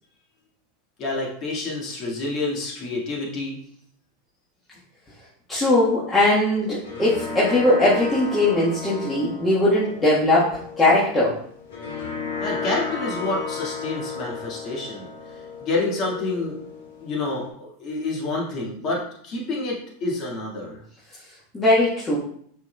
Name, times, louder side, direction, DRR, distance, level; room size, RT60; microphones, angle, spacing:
voice 1, 1.0-3.6 12.4-16.6 17.0-20.8, left 2 dB, 45° left, -2 dB, 1.9 m, -28 dB
voice 2, 5.5-11.4 21.5-22.2, left 1 dB, 15° left, -8 dB, 1.5 m, -20 dB
sound 1, 6.5-17.5, left 5 dB, 75° left, 1.2 m, -34 dB
5.8 x 4.0 x 2.3 m, 0.63 s
hypercardioid pair, 95°, 0 cm